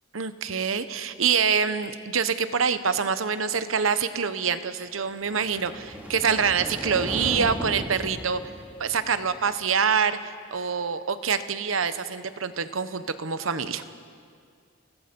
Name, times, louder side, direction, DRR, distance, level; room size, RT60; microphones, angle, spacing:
voice 1, 0.1-8.4 8.8-13.8, right 6 dB, 80° right, 12 dB, 1.0 m, -26 dB
sound 1, 5.3-9.5, equal, 10° right, 2.4 m, -36 dB
28.0 x 18.5 x 5.3 m, 2.2 s
head